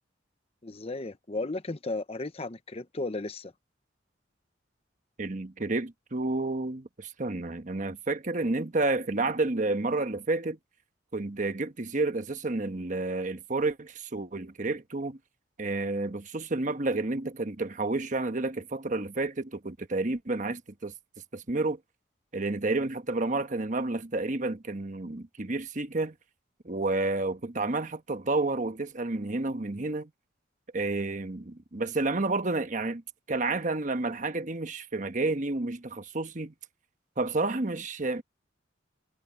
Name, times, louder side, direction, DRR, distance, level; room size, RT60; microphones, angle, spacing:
voice 1, 0.6-3.5, left 2 dB, 35° left, 0.8 m, -35 dB
voice 2, 5.2-10.6 11.1-15.2 15.6-20.9 21.3-21.8 22.3-26.1 26.6-30.1 30.7-33.0 33.3-36.5 37.2-38.2, right 2 dB, 40° right, 1.2 m, -30 dB
head